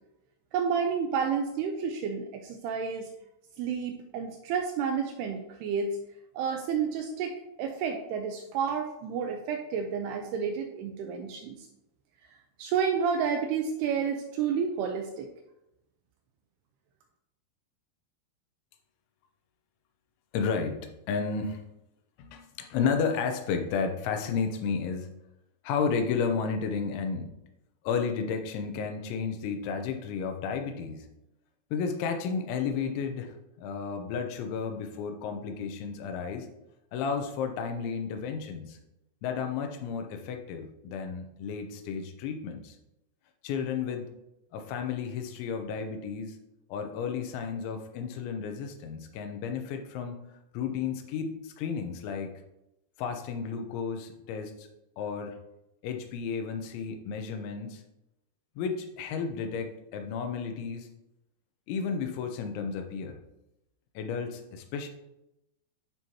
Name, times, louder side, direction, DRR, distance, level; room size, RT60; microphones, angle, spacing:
voice 1, 0.5-3.1 3.6-6.0 6.3-11.7 12.6-15.3, right 6 dB, 85° right, 4 dB, 2.4 m, -30 dB
voice 2, 20.3-21.6 22.2-25.1 25.6-27.3 27.8-31.1 31.7-36.5 36.9-38.8 39.2-42.8 43.4-44.1 44.5-46.4 46.7-50.2 50.5-52.3 53.0-54.7 55.0-55.4 55.8-57.8 58.6-60.9 61.7-63.2 64.0-64.9, left 6 dB, 90° left, 6 dB, 3.2 m, -32 dB
11.5 x 4.6 x 2.9 m, 0.89 s
omnidirectional pair, 5.2 m